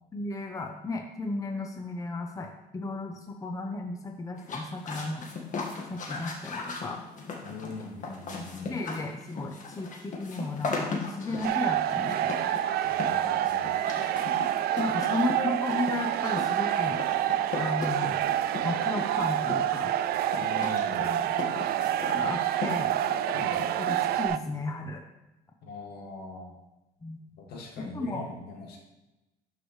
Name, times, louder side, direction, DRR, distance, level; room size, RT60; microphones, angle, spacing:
voice 1, 0.1-5.3 5.9-7.0 8.7-12.6 14.8-17.0 17.5-18.3 18.6-19.9 22.1-22.9 23.8-25.0 27.0-27.2 27.8-28.2, left 2 dB, 20° left, 3 dB, 0.7 m, -34 dB
sound 1, 4.4-24.3, left 4 dB, 50° left, 1.6 m, -38 dB
voice 2, 7.4-8.7 11.3-11.4 12.8-13.7 20.4-21.1 23.3-23.6 25.6-26.6 27.4-28.8, left 3 dB, 70° left, -1 dB, 2.0 m, -41 dB
sound 2, 11.4-24.4, right 12 dB, 65° right, 0.4 m, -27 dB
12.0 x 4.8 x 3.2 m, 0.99 s
cardioid pair, 110°, 17 cm